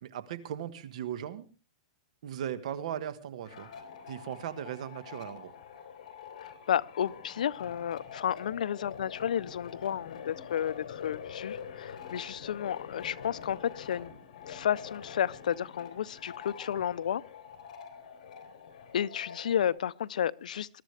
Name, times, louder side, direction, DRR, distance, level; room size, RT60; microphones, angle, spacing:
voice 1, 0.0-1.4 2.2-3.7 4.1-5.5 16.7-16.8, right 10 dB, 60° right, 1.5 m, -38 dB
sound 1, 3.4-19.8, left 7 dB, 65° left, 3.2 m, -45 dB
voice 2, 6.4-14.1 14.5-17.2 18.9-20.7, left 9 dB, 90° left, 0.6 m, -32 dB
21.5 x 12.5 x 3.4 m
supercardioid pair, 160°, 4 cm